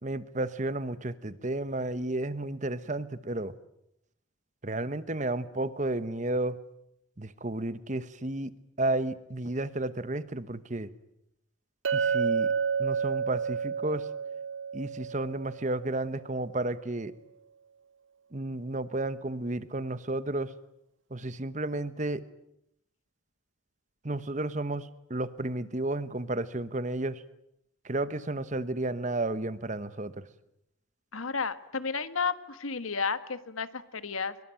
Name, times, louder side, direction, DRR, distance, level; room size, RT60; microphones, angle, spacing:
voice 1, 0.0-3.5 4.6-6.6 7.2-8.5 8.8-10.9 11.9-12.5 12.8-14.1 14.7-17.1 18.3-20.5 21.1-22.2 24.0-27.2 27.8-30.3, right 2 dB, 35° right, 14 dB, 1.1 m, -32 dB
Chink clink, 11.8-16.1, right 6 dB, 70° right, 1.1 m, -30 dB
voice 2, 31.1-34.3, left 5 dB, 90° left, 13 dB, 1.6 m, -32 dB
24.5 x 23.0 x 9.0 m, 0.80 s
head